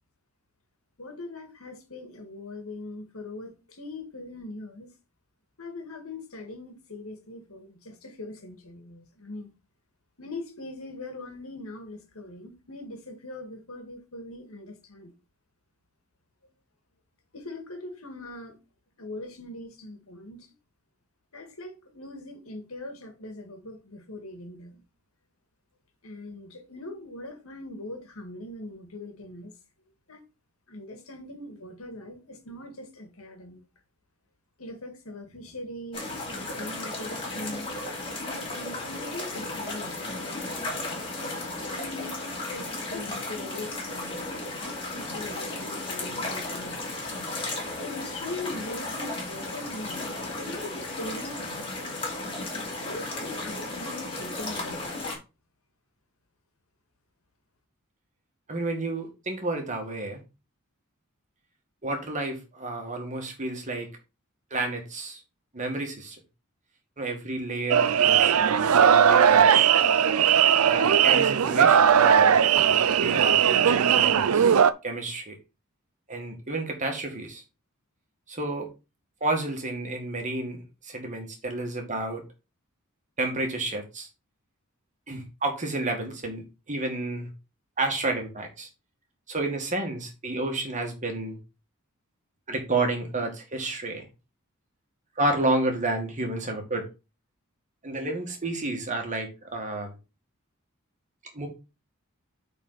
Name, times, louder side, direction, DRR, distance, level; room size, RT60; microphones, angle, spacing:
voice 1, 1.0-4.9 5.6-9.5 10.2-15.2 17.3-18.6 19.0-20.5 21.3-24.8 26.0-29.6 30.1-30.2 30.7-33.6 34.6-37.7 38.2-40.7 41.6-44.6 44.9-46.9 47.8-52.1 52.9-55.2, left 2 dB, 75° left, 2.0 m, -41 dB
sound 1, 35.9-55.2, left 2 dB, 25° left, 2.8 m, -34 dB
voice 2, 58.5-60.2 61.8-63.9 64.5-65.2 65.5-66.2 67.0-69.7 70.6-72.4 72.7-74.5 74.8-75.4 76.1-77.4 78.3-78.7 79.2-82.3 83.2-84.1 85.1-87.3 87.8-88.7 89.3-91.4 92.5-94.1 95.2-96.9 97.8-99.9 101.3-101.5, right 2 dB, 35° right, 2.0 m, -31 dB
sound 2, 67.7-74.7, right 8 dB, 85° right, 0.5 m, -19 dB
8.6 x 4.2 x 4.1 m
head